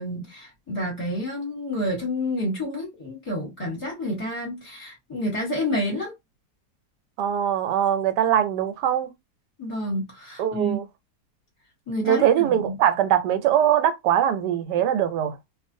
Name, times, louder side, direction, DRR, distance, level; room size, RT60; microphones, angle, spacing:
voice 1, 0.0-6.1 9.6-10.8 11.9-12.8, left 1 dB, 20° left, 1.0 m, -29 dB
voice 2, 7.2-9.1 10.4-10.8 12.0-15.4, right 10 dB, 85° right, 1.2 m, -22 dB
2.5 x 2.4 x 2.6 m
omnidirectional pair, 1.8 m